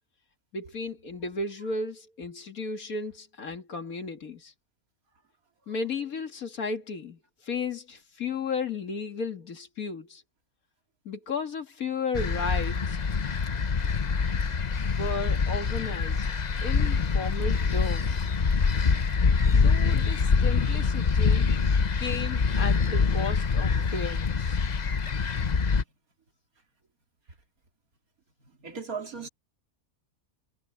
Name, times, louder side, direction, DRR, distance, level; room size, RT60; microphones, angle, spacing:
voice 1, 0.5-4.5 5.7-7.2 7.5-10.2 11.1-13.0 14.8-16.3 16.6-18.3 19.5-21.6 22.0-24.6, left 4 dB, 75° left, 2.5 m, -34 dB
sound 1, 12.1-25.8, left 5 dB, 35° left, 0.8 m, -25 dB
voice 2, 28.6-29.3, right 5 dB, 80° right, 3.1 m, -38 dB
omnidirectional pair, 1.5 m